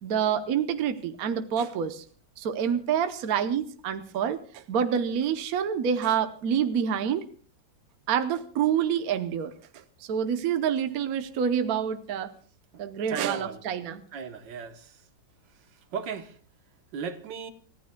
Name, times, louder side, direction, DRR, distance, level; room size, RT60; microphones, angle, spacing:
voice 1, 0.0-2.0 2.4-7.2 8.1-9.8 10.1-12.3 12.8-14.0, right 8 dB, 60° right, 1.2 m, -27 dB
voice 2, 13.1-13.6 14.1-15.0 15.9-16.4 16.9-17.5, right 6 dB, 75° right, 1.8 m, -35 dB
29.0 x 15.0 x 2.2 m
omnidirectional pair, 2.0 m